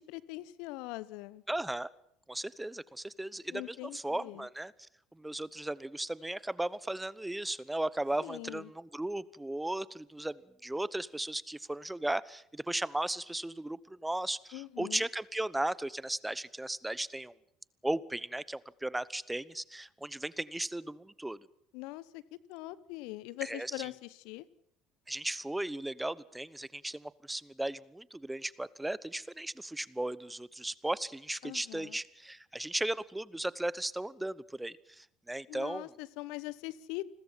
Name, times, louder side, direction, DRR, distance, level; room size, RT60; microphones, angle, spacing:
voice 1, 0.0-1.4 3.5-4.5 8.2-8.7 14.5-15.0 21.7-22.2 22.5-24.5 31.4-32.0 35.5-37.0, left 19 dB, 65° left, 19 dB, 1.0 m, -42 dB
voice 2, 1.5-1.9 2.3-4.7 5.1-17.3 17.8-21.4 23.4-23.9 25.1-35.9, right 1 dB, 10° right, 20 dB, 1.0 m, -36 dB
29.5 x 21.5 x 5.8 m, 0.72 s
figure-of-eight pair, 60°, 0 cm